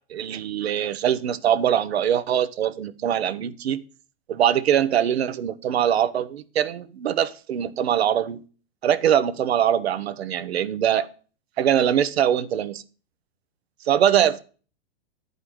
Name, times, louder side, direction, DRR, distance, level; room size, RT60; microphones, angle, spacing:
voice 1, 0.1-3.8 4.3-8.4 8.8-11.1 11.6-12.8 13.8-14.4, right 10 dB, 85° right, 1.0 m, -22 dB
10.0 x 5.4 x 7.8 m
hypercardioid pair, 145°, 31 cm